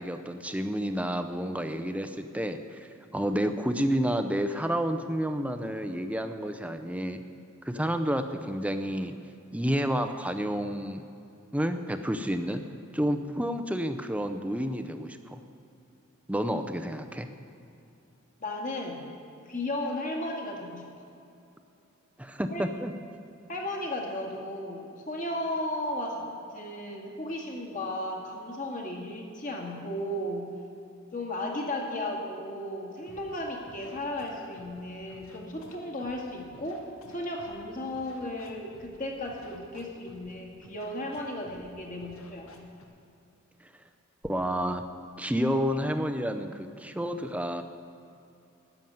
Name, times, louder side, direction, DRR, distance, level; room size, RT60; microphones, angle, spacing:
voice 1, 0.0-7.2 7.6-9.1 9.5-11.0 11.5-12.6 12.9-15.4 16.3-17.3 22.2-22.9 44.2-44.8 45.2-47.6, equal, 5° right, 8 dB, 0.6 m, -30 dB
voice 2, 18.4-19.0 19.5-20.9 22.5-22.6 23.5-30.5 31.1-42.6, left 1 dB, 40° left, 0 dB, 2.0 m, -35 dB
Scratching (performance technique), 33.1-33.4 33.6-34.8 35.1-36.2 36.5-37.6 37.9-39.0 39.3-40.3 40.6-41.2 41.5-41.7 42.0-42.8, left 2 dB, 80° left, 1.4 m, -52 dB
13.0 x 7.1 x 9.3 m, 2.7 s
head